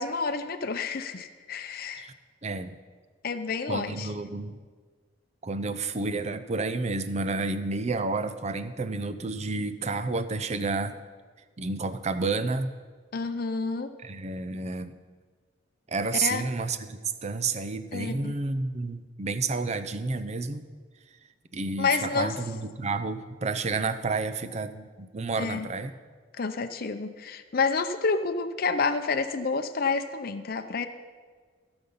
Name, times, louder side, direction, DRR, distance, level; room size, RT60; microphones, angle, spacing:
voice 1, 0.0-2.1 3.2-4.1 13.1-13.9 16.2-16.4 17.9-18.3 21.8-22.3 25.4-25.7 26.4-30.9, left 4 dB, 55° left, 8 dB, 0.6 m, -29 dB
voice 2, 2.4-2.8 3.7-4.6 5.4-10.9 11.6-12.7 14.0-15.0 15.9-20.7 21.5-25.9, right 3 dB, 35° right, 11 dB, 0.6 m, -30 dB
16.0 x 7.0 x 5.6 m, 1.5 s
head